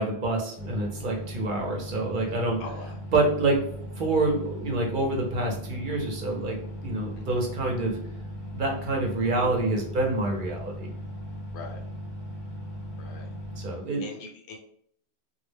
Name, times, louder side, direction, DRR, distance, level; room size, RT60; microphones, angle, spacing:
voice 1, 0.0-2.6 3.1-3.6 4.0-8.0 8.5-10.9 13.6-14.0, right 2 dB, 55° right, 0 dB, 0.7 m, -27 dB
sound 1, 0.6-13.7, equal, 50° left, 0.7 m, -38 dB
voice 2, 2.6-3.0 7.2-7.4 11.5-11.8 13.0-13.3 14.0-14.6, left 4 dB, 80° left, 3 dB, 0.9 m, -42 dB
2.2 x 2.0 x 3.2 m, 0.65 s
omnidirectional pair, 1.1 m